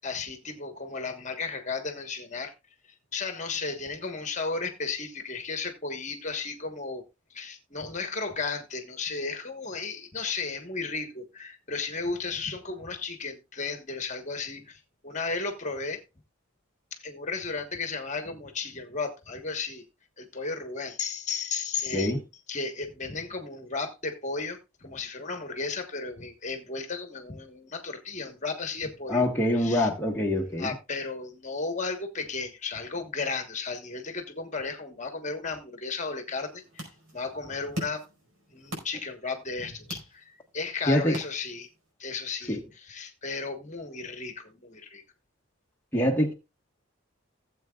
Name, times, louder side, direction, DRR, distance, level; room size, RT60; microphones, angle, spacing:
voice 1, 0.0-2.5 3.1-7.0 7.3-16.0 16.9-19.9 20.2-22.1 22.5-29.9 30.6-36.8 37.1-38.0 38.5-41.7 42.0-45.0, left 4 dB, 35° left, 1.3 m, -34 dB
voice 2, 29.1-30.7 40.9-41.2 42.5-42.6 45.9-46.3, left 1 dB, 10° left, 1.3 m, -24 dB
sound 1, 36.3-41.9, equal, 70° right, 4.9 m, -43 dB
17.0 x 7.8 x 2.4 m
head